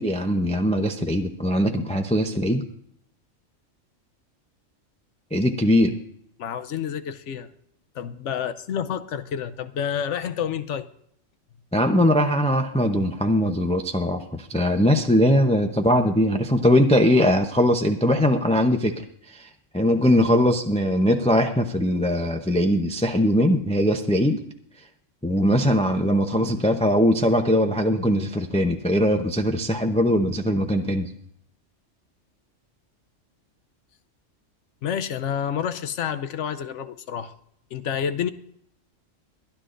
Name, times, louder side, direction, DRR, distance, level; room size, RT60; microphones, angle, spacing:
voice 1, 0.0-2.6 5.3-5.9 11.7-19.0 19.3-19.5 19.7-24.4 25.2-31.1, equal, 5° left, 4 dB, 0.5 m, -21 dB
voice 2, 6.4-7.5 7.9-10.9 34.8-37.3 37.7-38.3, left 8 dB, 70° left, 11 dB, 1.0 m, -29 dB
23.5 x 10.0 x 2.6 m, 0.70 s
omnidirectional pair, 1.3 m